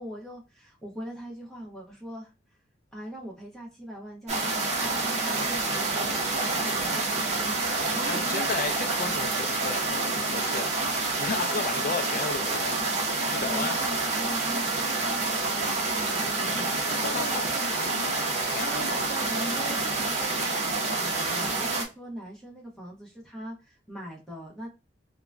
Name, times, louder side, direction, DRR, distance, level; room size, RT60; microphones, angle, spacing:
voice 1, 0.0-2.3 2.9-8.5 11.4-11.6 13.4-17.7 18.7-24.7, right 1 dB, 5° left, 1.1 m, -41 dB
sound 1, 4.3-21.8, right 3 dB, 40° right, 0.8 m, -28 dB
voice 2, 8.0-10.9 11.2-12.8 13.3-13.8 17.1-17.4 17.7-19.0, left 4 dB, 50° left, 0.3 m, -34 dB
2.9 x 2.2 x 2.4 m
head